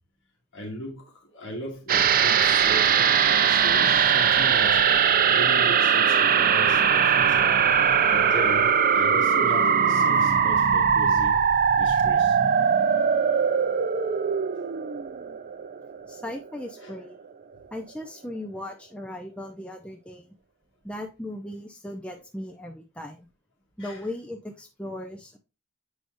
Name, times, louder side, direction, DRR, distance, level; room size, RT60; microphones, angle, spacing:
voice 1, 0.5-4.8 5.3-7.5 8.1-11.4 11.8-12.4 16.8-16.9 23.8-24.0, equal, 55° left, 2.4 m, -37 dB
sound 1, 1.9-16.5 16.8-16.9, right 7 dB, 40° right, 0.4 m, -21 dB
voice 2, 16.1-17.2 17.7-20.2 20.8-23.3 23.8-25.4, left 1 dB, 5° left, 0.6 m, -37 dB
7.8 x 4.8 x 2.6 m
head